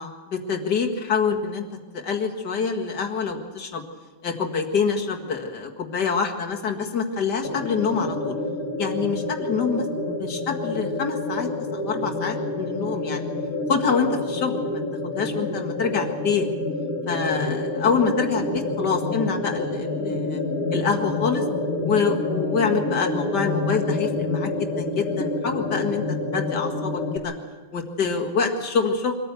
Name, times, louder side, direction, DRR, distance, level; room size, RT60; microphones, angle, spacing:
voice 1, 0.0-1.6 1.9-3.8 4.2-8.3 8.8-13.3 13.7-14.8 15.1-16.5 17.1-20.4 20.7-21.4 21.9-26.0 26.3-27.3 27.7-29.1, left 5 dB, 90° left, 2 dB, 2.5 m, -26 dB
sound 1, 7.4-27.2, left 2 dB, 60° left, 3.1 m, -28 dB
24.0 x 14.5 x 8.3 m, 1.3 s
omnidirectional pair, 1.7 m